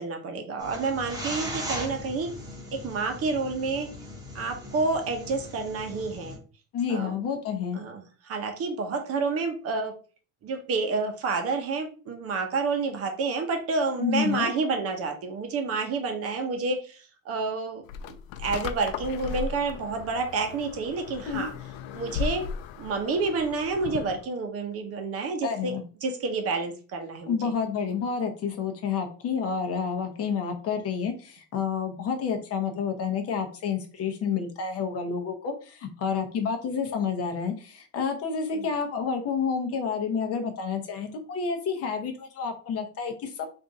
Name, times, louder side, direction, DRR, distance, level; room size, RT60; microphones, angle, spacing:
voice 1, 0.0-2.3 2.7-3.9 4.3-6.4 6.9-7.1 7.7-9.9 10.4-21.5 21.9-22.5 22.8-25.7 26.0-27.5 38.5-38.7, right 4 dB, 40° right, 5 dB, 0.8 m, -29 dB
sound 1, 0.6-6.4, equal, 10° right, 1.0 m, -38 dB
voice 2, 6.7-7.8 14.0-14.5 21.3-21.5 25.4-25.8 27.3-43.5, left 6 dB, 40° left, 4 dB, 0.8 m, -29 dB
sound 2, 17.9-24.2, left 7 dB, 80° left, 0.5 m, -36 dB
3.6 x 2.6 x 3.9 m, 0.37 s
cardioid pair, 160°, 35 cm